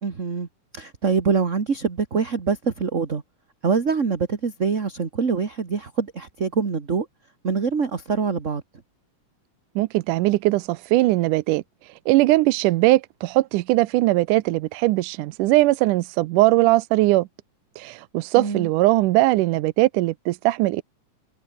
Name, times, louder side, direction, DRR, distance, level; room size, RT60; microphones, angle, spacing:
voice 1, 0.0-0.5 0.7-3.2 3.6-7.1 7.4-8.6 18.3-18.7, right 5 dB, 30° right, 1.7 m, -24 dB
voice 2, 9.8-11.6 12.1-17.3 17.8-20.8, right 18 dB, 80° right, 2.1 m, -20 dB
omnidirectional pair, 3.7 m